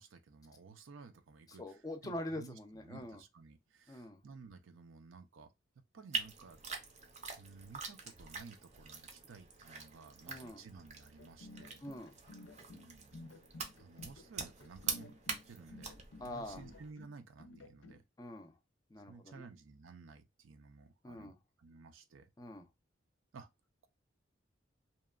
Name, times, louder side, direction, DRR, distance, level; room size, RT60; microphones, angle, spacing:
voice 1, 0.0-5.5 5.9-6.7 7.4-11.8 12.7-13.2 13.8-16.0 16.2-18.0 19.1-21.3 21.6-22.3 23.3-23.5, right 4 dB, 85° right, 0.5 m, -55 dB
voice 2, 1.5-3.2 3.9-4.2 10.3-10.6 11.8-12.2 16.2-16.6 18.2-18.6 18.9-19.4 21.0-21.4 22.4-22.7, left 1 dB, 20° left, 0.4 m, -44 dB
sound 1, 6.1-16.9, right 5 dB, 35° right, 0.5 m, -45 dB
sound 2, 11.2-18.0, left 2 dB, 85° left, 0.5 m, -54 dB
2.9 x 2.2 x 2.3 m
head